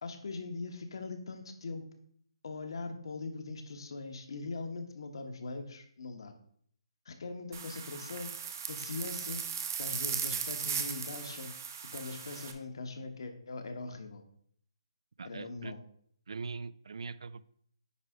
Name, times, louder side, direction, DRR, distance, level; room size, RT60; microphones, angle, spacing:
voice 1, 0.0-1.8 2.4-6.3 7.0-8.3 8.7-9.4 9.8-11.5 11.9-14.2 15.2-15.8, left 3 dB, 60° left, 6 dB, 1.2 m, -41 dB
sound 1, 7.5-12.5, right 7 dB, 35° right, 0.7 m, -37 dB
voice 2, 15.2-15.7 16.3-17.4, right 4 dB, 75° right, 18 dB, 0.4 m, -41 dB
9.7 x 3.4 x 4.9 m, 0.64 s
hypercardioid pair, 170°, 3 cm